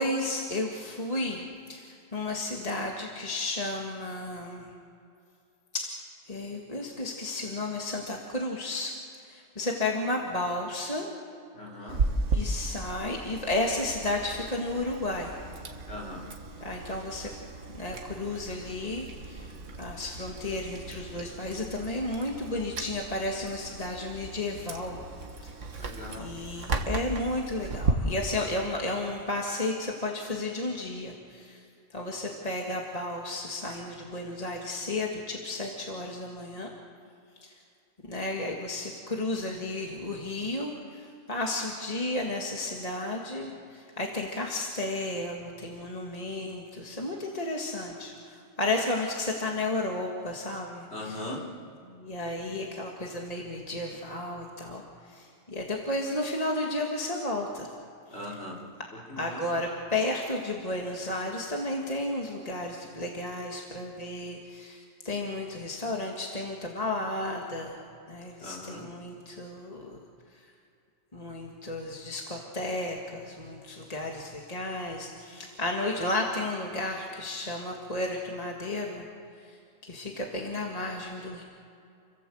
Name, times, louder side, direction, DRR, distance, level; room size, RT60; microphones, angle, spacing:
voice 1, 0.0-4.7 5.7-6.0 6.3-9.0 9.2-11.1 11.8-11.9 12.3-15.4 16.6-17.3 17.8-19.5 19.8-25.0 25.4-25.5 26.2-31.6 31.9-36.7 37.4-37.6 38.0-51.2 51.8-57.7 58.1-58.2 59.2-67.8 68.1-70.0 70.3-70.5 71.1-79.1 79.4-81.4, left 2 dB, 30° left, 0 dB, 2.1 m, -33 dB
voice 2, 11.5-12.0 15.9-16.3 25.8-26.4 50.9-51.4 58.1-58.6 59.1-59.4 68.4-68.9, left 1 dB, 50° left, -2 dB, 4.4 m, -39 dB
Chewing mastication, 11.9-27.9, right 3 dB, 70° right, 1.7 m, -35 dB
29.5 x 16.5 x 7.9 m, 2.5 s
omnidirectional pair, 1.3 m